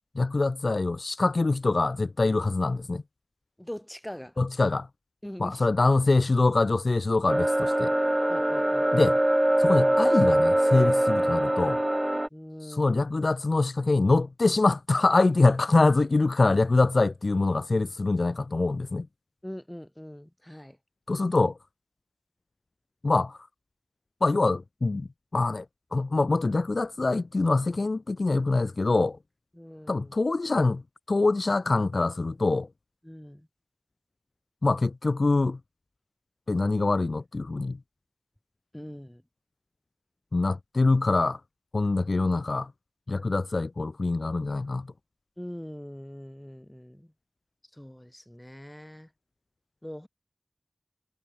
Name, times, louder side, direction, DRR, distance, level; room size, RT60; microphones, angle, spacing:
voice 1, 0.2-3.0 4.4-4.9 5.4-7.9 8.9-9.2 9.6-11.8 12.7-19.1 21.1-21.6 23.0-23.4 24.2-25.1 25.3-25.7 25.9-29.2 29.9-30.8 31.1-32.7 34.6-35.6 36.5-37.8 40.3-41.4 41.7-42.7 43.1-44.9, left 3 dB, 90° left, 0.4 m, -24 dB
voice 2, 3.6-4.4 5.2-5.7 8.3-9.0 12.3-13.0 19.4-20.8 29.5-30.1 33.0-33.5 38.7-39.2 45.4-47.1 47.7-49.1 49.8-50.1, equal, 15° left, 5.0 m, -42 dB
sound 1, 7.3-12.3, right 1 dB, 25° right, 0.7 m, -23 dB
wide cardioid pair, 45°, 0 cm